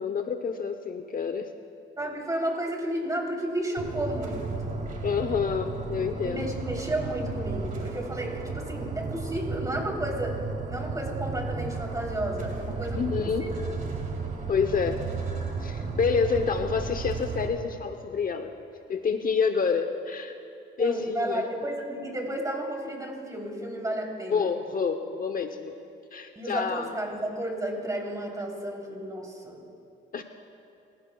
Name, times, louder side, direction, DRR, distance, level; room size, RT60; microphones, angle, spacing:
voice 1, 0.0-1.5 5.0-6.5 13.0-13.5 14.5-15.0 15.6-18.5 18.9-20.4 20.8-21.5 24.3-25.7 26.1-26.9 30.1-30.2, left 5 dB, 45° left, 7 dB, 0.8 m, -28 dB
voice 2, 2.0-4.8 6.2-10.4 10.7-13.6 20.8-24.5 26.4-29.6, right 1 dB, 15° right, 0 dB, 3.4 m, -32 dB
sound 1, 3.8-17.5, right 4 dB, 40° right, 2.4 m, -34 dB
29.0 x 15.5 x 2.3 m, 2.8 s
cardioid pair, 90°, 20 cm